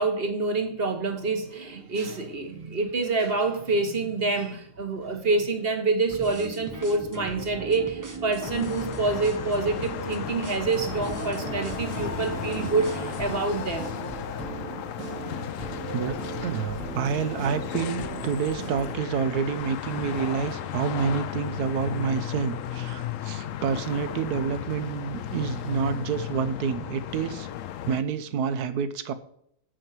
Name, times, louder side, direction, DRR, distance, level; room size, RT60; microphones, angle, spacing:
voice 1, 0.0-13.9, right 3 dB, 45° right, 1.2 m, -27 dB
sound 1, 6.1-13.2, right 2 dB, 20° right, 0.5 m, -38 dB
sound 2, 8.4-28.0, left 11 dB, 70° left, 0.9 m, -35 dB
sound 3, 10.6-19.1, right 3 dB, 65° right, 2.4 m, -38 dB
voice 2, 15.9-27.5 27.9-29.1, right 6 dB, 80° right, 1.3 m, -28 dB
9.1 x 4.5 x 7.5 m
omnidirectional pair, 1.6 m